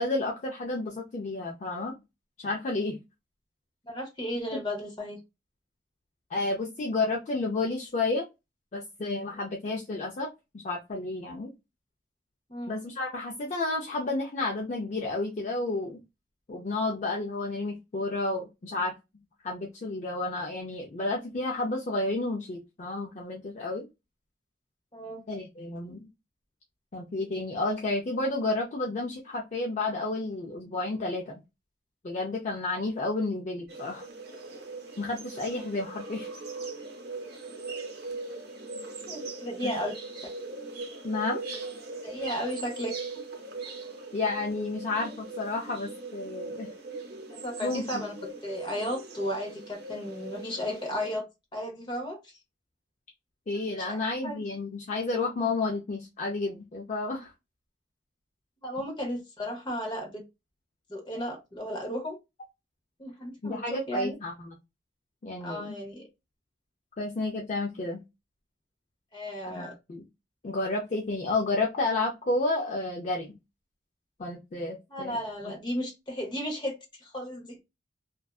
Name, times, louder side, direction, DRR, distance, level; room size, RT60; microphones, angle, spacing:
voice 1, 0.0-2.0 2.4-3.0 6.3-8.2 8.7-10.3 10.5-11.5 12.7-16.0 16.5-18.9 19.4-23.9 25.3-26.1 26.9-31.4 32.0-34.1 35.0-36.3 39.6-39.7 41.0-41.4 44.1-46.7 47.6-48.0 53.5-57.3 63.4-64.3 65.2-65.8 67.0-68.0 69.4-70.0 70.4-73.3 74.2-75.2 75.4-75.5, left 2 dB, 40° left, 0 dB, 0.4 m, -31 dB
voice 2, 3.8-5.2 12.5-12.7 24.9-25.3 39.1-40.0 42.0-43.0 47.3-48.1 48.4-51.3 51.5-52.3 53.8-54.0 54.2-54.4 58.6-60.2 60.9-62.1 63.0-64.1 65.4-66.1 69.1-69.7 74.9-77.6, equal, 25° left, 2 dB, 0.8 m, -34 dB
sound 1, 33.7-51.2, right 3 dB, 60° right, 0.7 m, -40 dB
2.6 x 2.2 x 2.3 m, 0.23 s
head